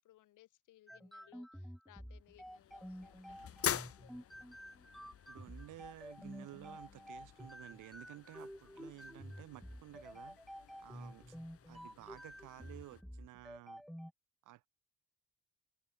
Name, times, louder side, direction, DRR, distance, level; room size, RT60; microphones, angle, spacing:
voice 1, 0.0-4.3 8.9-9.1 10.9-11.2, left 14 dB, 85° left, 4.3 m, -65 dB
sound 1, 0.9-14.1, equal, ahead, 1.5 m, -50 dB
sound 2, 2.2-13.0, left 9 dB, 50° left, 1.2 m, -47 dB
voice 2, 5.0-10.4 10.8-11.4 11.7-13.8 14.4-14.7, right 16 dB, 90° right, 5.9 m, -54 dB
cardioid pair, 90°, 30 cm